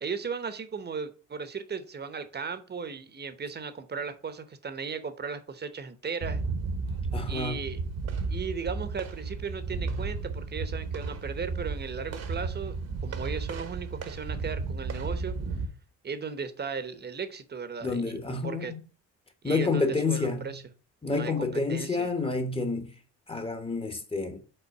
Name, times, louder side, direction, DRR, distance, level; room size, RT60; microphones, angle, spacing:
voice 1, 0.0-6.4 7.3-7.8 8.3-12.7 13.0-15.3 16.0-18.2 18.4-18.7 19.4-20.6 21.1-22.1, right 5 dB, 35° right, 1.0 m, -36 dB
sound 1, 6.2-15.7, right 4 dB, 55° right, 1.1 m, -33 dB
voice 2, 7.1-7.8 17.8-18.8 19.4-20.6 21.0-22.9 23.3-24.4, left 3 dB, 20° left, 1.2 m, -29 dB
5.5 x 3.8 x 6.0 m
cardioid pair, 90°, 30 cm